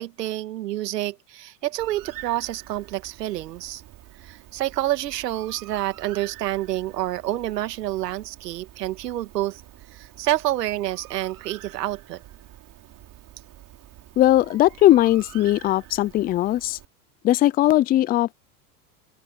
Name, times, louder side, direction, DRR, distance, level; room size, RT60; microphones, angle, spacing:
voice 1, 0.0-3.8 4.2-9.6 9.9-12.2, right 14 dB, 85° right, 2.3 m, -28 dB
Bird, 1.8-16.9, right 14 dB, 40° right, 4.2 m, -46 dB
voice 2, 14.2-16.8 17.2-18.3, left 14 dB, 20° left, 0.4 m, -19 dB
open air
hypercardioid pair, 105°, 47 cm